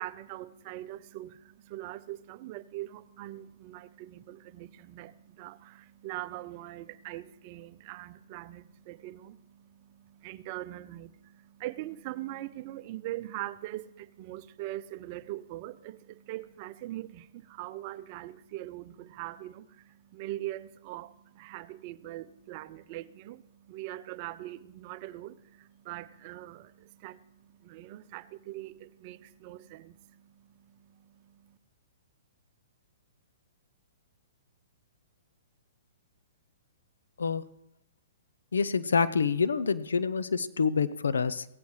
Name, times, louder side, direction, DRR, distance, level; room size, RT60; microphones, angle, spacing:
voice 1, 0.0-31.6, right 15 dB, 40° right, 0.7 m, -42 dB
voice 2, 38.5-41.5, left 5 dB, 85° left, 0.8 m, -27 dB
17.0 x 16.0 x 3.2 m
hypercardioid pair, 130°, 0 cm